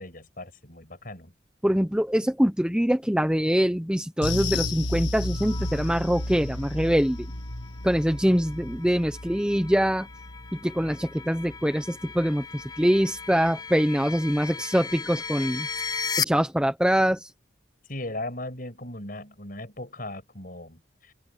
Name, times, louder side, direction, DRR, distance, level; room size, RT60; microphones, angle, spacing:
voice 1, 0.0-1.3 17.8-21.1, left 1 dB, 50° left, 7.9 m, -38 dB
voice 2, 1.6-7.3 7.8-10.1 10.5-15.7 16.2-17.3, equal, 5° right, 1.0 m, -24 dB
sound 1, 4.2-12.9 13.2-13.4 13.8-13.9, left 2 dB, 75° left, 2.2 m, -34 dB
sound 2, 5.3-16.2, left 5 dB, 20° left, 0.8 m, -37 dB
open air
head